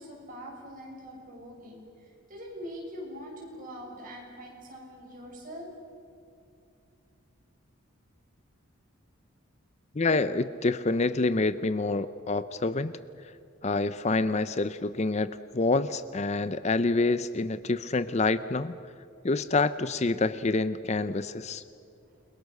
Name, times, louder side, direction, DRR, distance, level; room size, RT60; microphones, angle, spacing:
voice 1, 0.0-5.7 21.7-21.8, equal, 40° right, -1 dB, 7.4 m, -43 dB
voice 2, 10.0-12.9 13.6-18.7 19.2-21.6, left 3 dB, 30° left, 14 dB, 0.5 m, -27 dB
29.5 x 22.5 x 6.6 m, 2.6 s
head